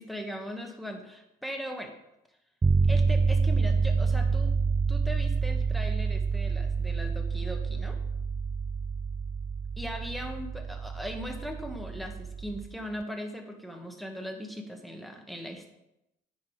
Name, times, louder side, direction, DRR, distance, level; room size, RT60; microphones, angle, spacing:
voice 1, 0.0-1.9 2.9-4.5 4.9-8.0 9.8-15.7, equal, ahead, 3 dB, 1.6 m, -39 dB
sound 1, 2.6-12.7, right 4 dB, 15° right, 0.3 m, -28 dB
9.6 x 6.2 x 5.1 m, 0.89 s
cardioid pair, 90°, 20 cm